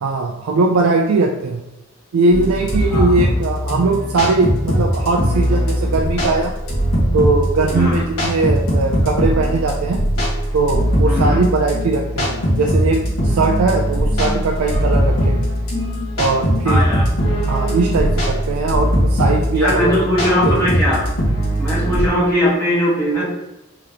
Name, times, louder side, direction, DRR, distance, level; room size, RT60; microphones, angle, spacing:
voice 1, 0.0-1.6 2.1-6.5 7.1-10.0 10.5-13.0 13.2-15.5 16.2-16.8 17.5-20.1 20.4-20.7, right 3 dB, 75° right, 0 dB, 0.4 m, -19 dB
sound 1, 2.3-22.1, equal, 75° left, 1.4 m, -20 dB
voice 2, 11.1-11.4 16.6-17.0 19.5-21.0 21.6-23.2, left 1 dB, 10° left, -8 dB, 1.2 m, -19 dB
3.6 x 3.4 x 2.8 m, 0.90 s
head